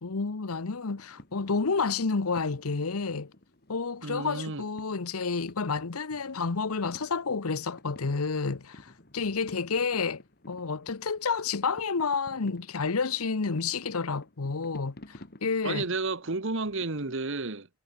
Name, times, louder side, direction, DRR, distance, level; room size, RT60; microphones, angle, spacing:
voice 1, 0.0-3.3 3.7-15.8, left 4 dB, 90° left, 0.9 m, -30 dB
sound 1, 0.8-17.1, left 1 dB, 45° left, 2.0 m, -54 dB
voice 2, 4.0-4.7 15.6-17.7, right 3 dB, 60° right, 1.3 m, -31 dB
head